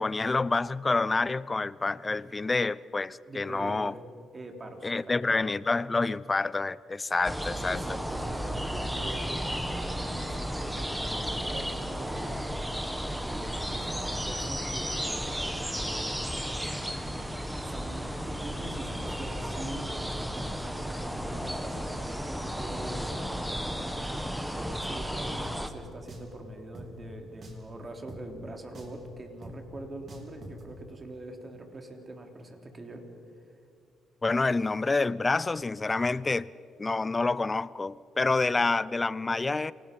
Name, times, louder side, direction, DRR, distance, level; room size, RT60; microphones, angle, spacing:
voice 1, 0.0-3.9 4.8-7.8 34.2-36.5 36.8-39.7, left 3 dB, 25° left, 20 dB, 0.5 m, -28 dB
voice 2, 3.3-4.0 4.3-5.5 7.6-12.5 13.2-16.2 16.5-16.9 17.6-33.0, right 1 dB, 30° right, 4 dB, 3.6 m, -43 dB
sound 1, 7.2-25.7, equal, 5° right, 1.8 m, -33 dB
Drum, 25.4-25.6 26.1-26.3 26.7-26.9 27.4-27.7 28.1-28.2 28.7-29.0 29.4-29.6 30.1-30.6, right 1 dB, 50° right, 4.0 m, -44 dB
28.0 x 18.5 x 5.3 m, 2.5 s
supercardioid pair, 70°, 0 cm